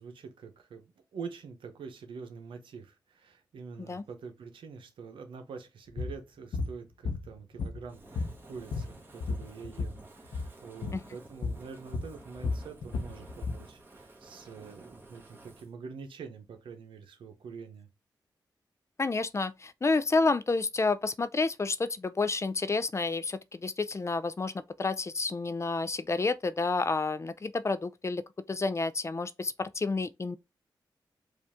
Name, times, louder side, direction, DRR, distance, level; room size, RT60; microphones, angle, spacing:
voice 1, 0.0-17.9, right 5 dB, 90° right, 0.8 m, -45 dB
sound 1, 6.0-6.2 6.5-6.7 7.1-7.9 8.2-10.0 10.3-10.5 10.8-11.0 11.4-11.6 11.9-13.6, left 3 dB, 80° left, 0.8 m, -33 dB
Fire, 7.9-15.7, right 2 dB, 25° right, 1.4 m, -53 dB
voice 2, 19.0-24.5 24.8-30.4, left 3 dB, 35° left, 0.4 m, -30 dB
4.9 x 2.6 x 3.5 m
cardioid pair, 50°, 8 cm